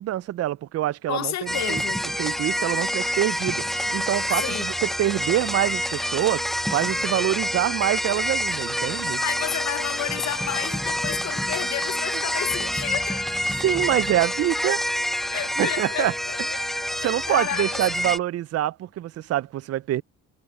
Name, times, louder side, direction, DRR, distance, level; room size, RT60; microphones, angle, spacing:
voice 1, 0.0-1.8 2.2-3.6 3.9-4.7 5.0-6.4 6.7-9.2 13.5-14.8 15.3-16.1 16.5-20.0, right 13 dB, 55° right, 0.5 m, -25 dB
voice 2, 1.1-2.0 4.4-4.7 9.2-13.4 15.3-16.4 17.0-17.8, left 12 dB, 65° left, 1.0 m, -31 dB
sound 1, 1.5-18.2, equal, ahead, 0.5 m, -27 dB
cardioid pair, 90°, 30 cm